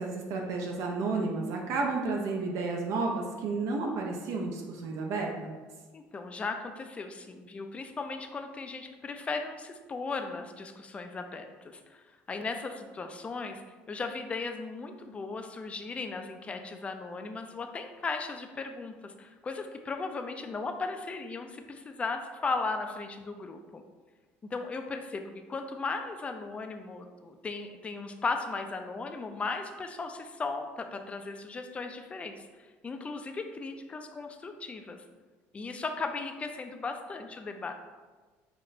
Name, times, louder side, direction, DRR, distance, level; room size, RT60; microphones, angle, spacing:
voice 1, 0.0-5.6, right 3 dB, 65° right, 1 dB, 0.5 m, -31 dB
voice 2, 5.9-13.6 13.9-23.8 24.4-35.0 35.5-37.7, left 4 dB, 25° left, 5 dB, 0.3 m, -37 dB
5.8 x 2.1 x 2.6 m, 1.3 s
cardioid pair, 125°, 5 cm